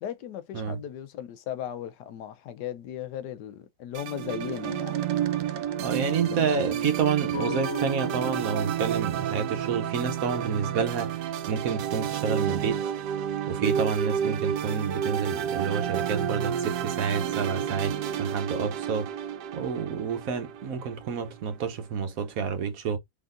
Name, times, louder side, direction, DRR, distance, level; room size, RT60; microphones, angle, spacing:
voice 1, 0.0-5.0 6.1-6.9, left 10 dB, 80° left, 1.2 m, -37 dB
sound 1, 3.9-21.3, right 9 dB, 85° right, 1.2 m, -30 dB
voice 2, 5.8-12.8 13.5-19.1 19.5-23.0, right 6 dB, 65° right, 1.1 m, -29 dB
sound 2, 7.3-11.1, left 6 dB, 50° left, 1.6 m, -40 dB
3.9 x 3.4 x 2.4 m
omnidirectional pair, 1.8 m